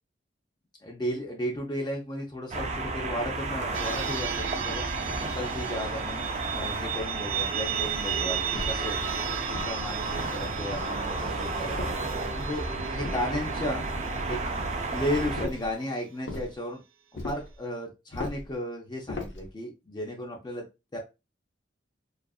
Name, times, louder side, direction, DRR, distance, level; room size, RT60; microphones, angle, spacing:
voice 1, 0.8-4.8 5.3-6.2 6.5-9.0 9.5-11.8 12.3-13.8 14.3-14.5 14.9-16.8 17.2-20.6 20.9-21.0, equal, 20° left, 0 dB, 0.5 m, -34 dB
sound 1, 2.5-15.5, right 2 dB, 35° right, 0.3 m, -32 dB
sound 2, 3.7-16.3, right 9 dB, 90° right, 0.5 m, -36 dB
sound 3, 8.5-9.0 9.5-10.2 10.7-11.2 11.8-12.4 13.0-13.7 15.4-15.7 16.3-16.5 17.2-17.6 18.1-18.5 19.1-19.5, left 2 dB, 75° left, 0.7 m, -38 dB
2.6 x 2.4 x 2.3 m, 0.26 s
head